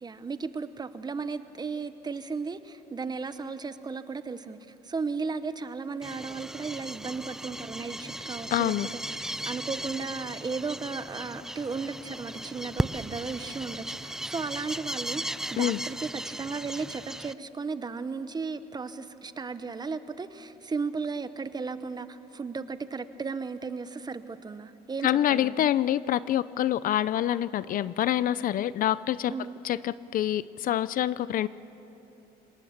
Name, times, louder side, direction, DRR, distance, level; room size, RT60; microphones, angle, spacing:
voice 1, 0.0-4.6 4.8-8.7 9.1-25.5 29.3-29.5, right 4 dB, 25° right, 12 dB, 0.9 m, -35 dB
sound 1, 6.0-17.3, right 1 dB, 5° right, 0.4 m, -36 dB
voice 2, 8.5-8.9 15.6-15.8 25.0-29.3 29.6-31.5, left 12 dB, 55° left, 18 dB, 0.5 m, -26 dB
26.5 x 18.5 x 7.2 m, 3.0 s
cardioid pair, 110°, 17 cm